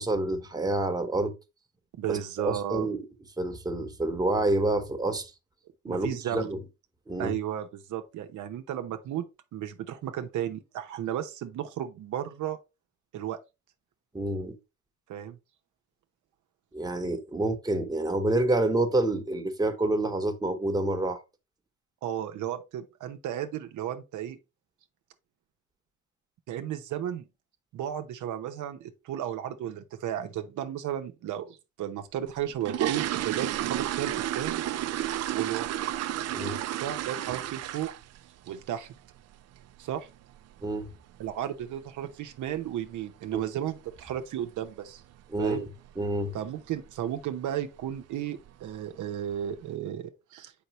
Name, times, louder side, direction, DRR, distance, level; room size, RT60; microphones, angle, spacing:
voice 1, 0.0-1.3 2.1-3.1 3.4-5.3 5.8-6.6 7.1-7.3 14.1-14.6 16.7-21.2 36.3-36.6 40.6-40.9 43.3-43.4 45.3-45.7 46.0-46.4, right 2 dB, 15° right, 1.1 m, -28 dB
voice 2, 2.0-2.9 5.8-6.5 7.2-9.2 9.5-12.6 13.1-13.4 15.1-15.4 22.0-24.4 26.5-27.2 27.7-34.6 35.3-35.7 36.4-37.9 38.5-38.9 39.8-40.1 41.2-45.0 45.4-45.6 46.3-50.5, right 10 dB, 75° right, 0.8 m, -34 dB
sound 1, 32.3-38.2 38.5-38.8 39.1-39.2 39.6-39.7 40.1-40.3 40.6-40.7 41.3-41.4 41.6-41.8 42.3-42.6 42.9-43.0 43.4-43.6 43.9-44.0 44.4-44.5 45.1-45.4 45.8-46.1 46.5-46.6 47.0-47.1 47.8-48.0 48.4-48.9 49.3-49.4, right 12 dB, 60° right, 0.5 m, -32 dB
6.7 x 5.2 x 3.0 m
cardioid pair, 90°, 30 cm